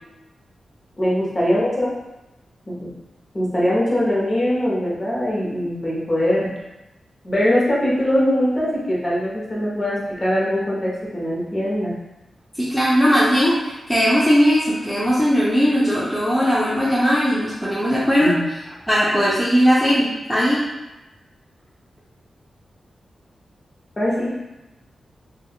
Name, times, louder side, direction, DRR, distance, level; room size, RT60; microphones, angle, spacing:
voice 1, 1.0-1.9 2.7-2.9 3.3-6.5 7.2-11.9 18.2-18.4 24.0-24.3, equal, 25° left, -6 dB, 0.8 m, -21 dB
voice 2, 12.6-18.3 18.9-20.6, equal, ahead, -8 dB, 0.5 m, -18 dB
3.5 x 2.3 x 2.3 m, 1.0 s
wide cardioid pair, 145°, 0 cm